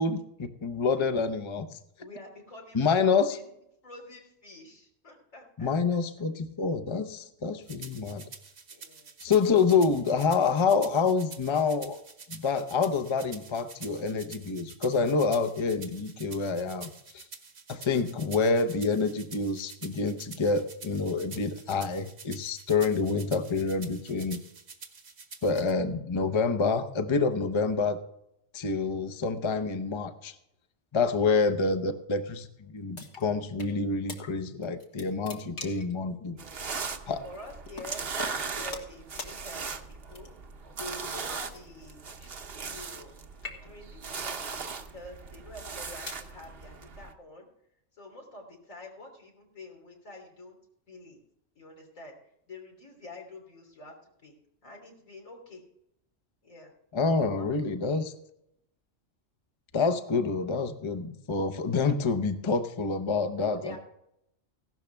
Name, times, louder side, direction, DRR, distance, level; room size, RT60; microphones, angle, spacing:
voice 1, 0.0-1.7 2.7-3.4 5.6-8.2 9.2-12.0 12.3-16.9 17.1-17.2 17.7-24.4 25.4-28.0 28.5-30.3 30.9-36.4 37.1-37.2 56.9-58.1 59.7-63.8, left 4 dB, 25° left, 9 dB, 0.7 m, -27 dB
voice 2, 2.0-3.5 3.8-6.0 8.7-9.1 31.1-31.7 36.3-36.8 37.2-40.3 40.8-42.0 42.6-43.2 43.6-47.5 48.0-50.6 50.9-51.2 51.6-52.2 52.5-53.9 54.2-54.4 54.6-55.6 56.4-56.7 57.1-58.0 63.3-63.8, left 2 dB, 90° left, 0 dB, 3.8 m, -47 dB
sound 1, 7.7-25.7, right 5 dB, 70° right, 1.7 m, -48 dB
sound 2, 32.9-33.7 34.1-34.2 34.6-35.9 36.7-36.9 37.8-37.9 38.2-38.9 39.2-39.3 40.1-40.5 41.5-43.1 43.3-43.9 44.6-44.9 45.6-46.3, left 3 dB, 70° left, 2.2 m, -42 dB
sound 3, 36.4-47.1, right 5 dB, 50° right, 1.1 m, -38 dB
16.0 x 12.0 x 3.5 m, 0.78 s
omnidirectional pair, 1.3 m